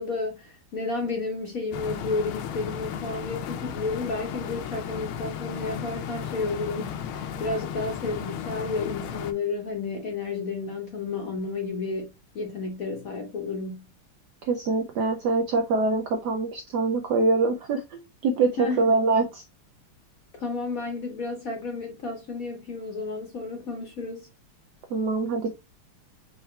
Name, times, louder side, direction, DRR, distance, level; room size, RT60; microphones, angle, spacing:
voice 1, 0.0-13.9 18.6-18.9 20.3-24.3, left 3 dB, 60° left, 0.9 m, -32 dB
sound 1, 1.7-9.3, left 8 dB, 75° left, 1.4 m, -34 dB
voice 2, 14.4-19.4 24.9-25.5, right 3 dB, 80° right, 0.9 m, -24 dB
4.7 x 3.1 x 3.1 m
omnidirectional pair, 2.4 m